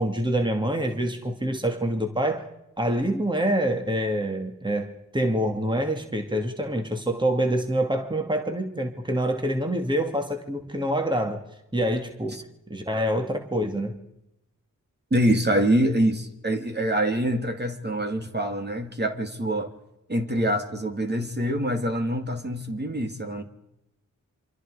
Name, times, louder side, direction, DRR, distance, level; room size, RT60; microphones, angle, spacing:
voice 1, 0.0-2.5 2.8-11.4 11.7-12.4 12.7-14.0, right 1 dB, 15° right, 2.4 m, -26 dB
voice 2, 15.1-19.7 20.1-23.4, right 1 dB, 30° right, 2.9 m, -25 dB
27.5 x 25.0 x 5.0 m
cardioid pair, 55°, 32 cm